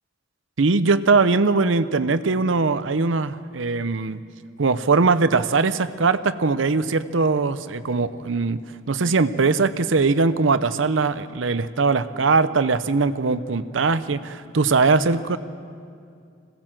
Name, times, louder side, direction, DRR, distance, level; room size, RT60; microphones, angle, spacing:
voice 1, 0.6-4.2 4.6-8.6 8.9-15.4, right 4 dB, 75° right, 13 dB, 0.7 m, -21 dB
21.5 x 16.5 x 7.6 m, 2.3 s
head